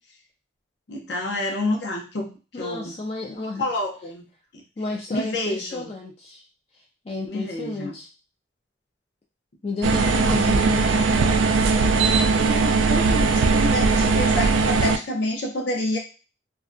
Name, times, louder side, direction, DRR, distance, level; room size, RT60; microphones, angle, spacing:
voice 1, 0.9-2.3 2.6-3.0 3.6-4.3 4.5-4.6 5.1-5.9 7.3-8.0 12.4-16.0, left 1 dB, 70° left, 1 dB, 0.6 m, -28 dB
voice 2, 2.5-3.6 4.8-6.4 7.1-8.1 9.6-11.4, left 3 dB, 30° left, -1 dB, 0.3 m, -32 dB
sound 1, 9.8-15.0, right 4 dB, 85° right, 0.3 m, -19 dB
2.4 x 2.1 x 2.5 m, 0.34 s
head